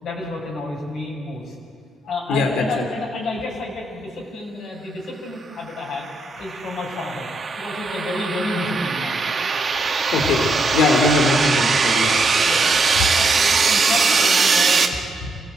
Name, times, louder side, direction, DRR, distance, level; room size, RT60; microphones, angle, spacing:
voice 1, 0.0-1.5 2.1-7.3 7.6-9.2 10.6-10.7 12.4-12.7 12.9-15.5, left 2 dB, 65° left, -3 dB, 6.7 m, -30 dB
voice 2, 2.3-2.6 10.1-12.1, left 3 dB, 90° left, 4 dB, 3.1 m, -20 dB
sound 1, 5.9-14.9, right 5 dB, 45° right, 2.0 m, -20 dB
26.0 x 16.0 x 8.1 m, 2.1 s
cardioid pair, 90°, 0 cm